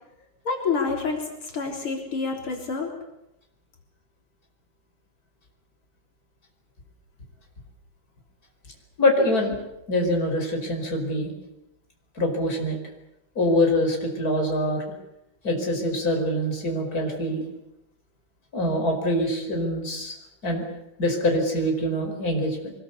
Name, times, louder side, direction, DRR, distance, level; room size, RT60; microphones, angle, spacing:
voice 1, 0.4-2.9, left 4 dB, 85° left, 2 dB, 4.6 m, -28 dB
voice 2, 9.0-9.6 9.9-11.3 12.2-12.8 13.4-14.8 15.4-17.4 18.5-20.2 20.4-20.6 21.0-22.7, left 1 dB, 40° left, 2 dB, 5.6 m, -24 dB
24.5 x 21.5 x 8.4 m, 0.86 s
omnidirectional pair, 2.3 m